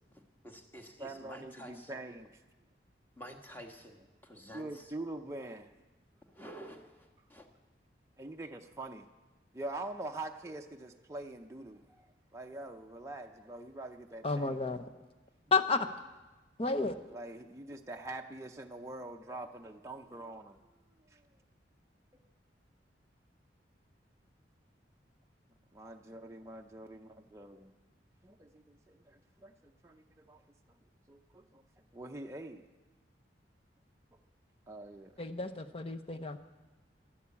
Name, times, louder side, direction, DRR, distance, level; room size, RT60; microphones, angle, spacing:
voice 1, 0.1-2.0 3.1-4.9 6.3-7.5, equal, 10° left, 3 dB, 1.3 m, -50 dB
voice 2, 1.0-2.4 4.4-5.7 8.2-9.1 9.5-12.1 12.3-14.6 17.1-20.6 21.1-21.2 25.7-27.8 28.2-30.4 30.7-30.8 31.1-31.6 31.9-32.6 34.7-35.1, right 2 dB, 15° right, 2 dB, 0.6 m, -44 dB
voice 3, 14.2-14.8 15.5-15.9 16.6-16.9 35.2-36.4, left 4 dB, 30° left, 9 dB, 0.7 m, -31 dB
12.0 x 11.5 x 8.4 m, 1.2 s
head